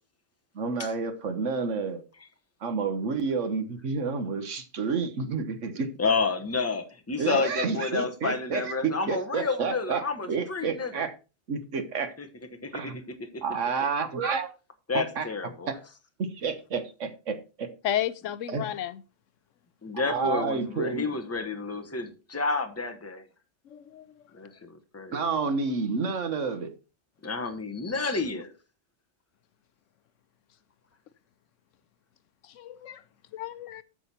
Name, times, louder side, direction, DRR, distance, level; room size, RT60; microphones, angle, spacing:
voice 1, 0.5-2.0 2.6-5.9 7.2-8.7 9.1-10.0 10.3-11.1 11.5-12.1 12.7-13.0 13.4-14.5 14.9-15.3 15.7-15.8 16.2-17.7 18.5-18.7 20.1-21.1 25.1-26.7, right 5 dB, 80° right, 1.5 m, -30 dB
voice 2, 6.0-10.9 12.2-12.3 12.6-13.4 14.9-15.7 19.8-23.2 24.3-25.2 27.2-28.5, left 4 dB, 15° left, 1.0 m, -30 dB
voice 3, 17.8-19.0 23.7-24.1 32.6-33.0 33.3-33.8, left 11 dB, 85° left, 1.0 m, -32 dB
9.1 x 6.4 x 4.3 m
omnidirectional pair, 1.3 m